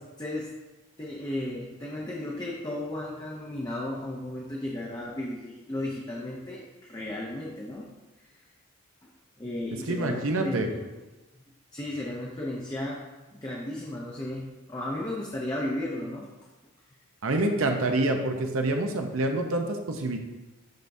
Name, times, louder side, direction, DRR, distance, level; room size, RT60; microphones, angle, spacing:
voice 1, 0.2-0.5 1.0-7.9 9.4-10.8 11.7-13.0 13.3-16.3, left 1 dB, 20° left, -3 dB, 0.6 m, -34 dB
voice 2, 9.9-10.7 17.2-20.2, right 2 dB, 70° right, 4 dB, 0.7 m, -27 dB
10.5 x 3.5 x 2.6 m, 1.1 s
head